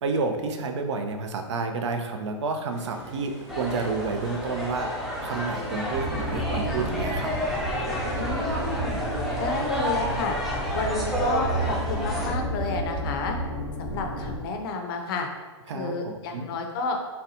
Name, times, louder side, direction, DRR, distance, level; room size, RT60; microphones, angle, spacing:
voice 1, 0.0-4.9 5.2-7.3 15.7-16.5, right 4 dB, 70° right, 5 dB, 0.5 m, -30 dB
sound 1, 2.7-11.3, right 2 dB, 50° right, 1.4 m, -44 dB
sound 2, 3.5-12.3, equal, ahead, 0.5 m, -31 dB
sound 3, 5.9-14.4, right 1 dB, 25° right, 1.2 m, -31 dB
voice 2, 8.1-9.0 9.4-10.4 10.7-13.4 13.8-15.3 15.7-17.0, left 4 dB, 50° left, 3 dB, 0.5 m, -31 dB
4.0 x 2.2 x 2.6 m, 1.3 s
hypercardioid pair, 125°, 15 cm